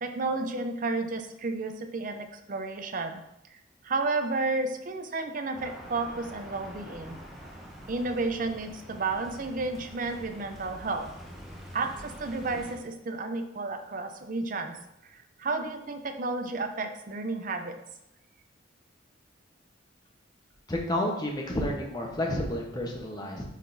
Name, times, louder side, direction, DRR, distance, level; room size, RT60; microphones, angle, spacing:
voice 1, 0.0-3.2 3.8-7.2 7.9-11.1 11.7-14.8 15.0-17.8, right 3 dB, 45° right, 7 dB, 0.5 m, -32 dB
sound 1, 5.5-12.8, equal, ahead, 0.9 m, -45 dB
voice 2, 20.7-23.4, left 1 dB, 20° left, 0 dB, 1.0 m, -30 dB
10.0 x 3.8 x 2.6 m, 0.86 s
head